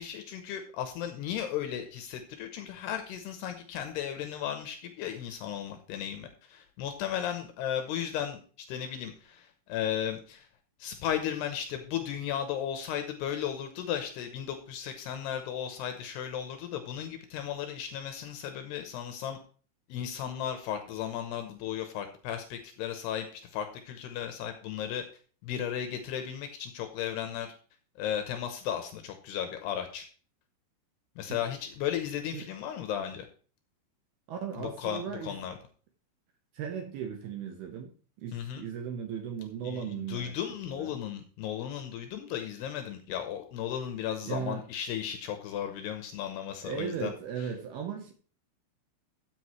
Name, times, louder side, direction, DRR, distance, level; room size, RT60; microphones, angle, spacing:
voice 1, 0.0-10.5 10.8-19.4 19.9-25.0 25.4-27.5 28.0-30.1 31.2-33.3 34.6-35.6 38.3-38.6 39.6-47.1, left 9 dB, 75° left, 7 dB, 2.7 m, -35 dB
voice 2, 34.3-35.5 36.5-37.9 38.2-40.4 40.6-41.0 44.3-44.6 46.6-48.1, right 7 dB, 70° right, 5 dB, 2.5 m, -37 dB
14.0 x 8.0 x 3.2 m, 0.41 s
omnidirectional pair, 5.4 m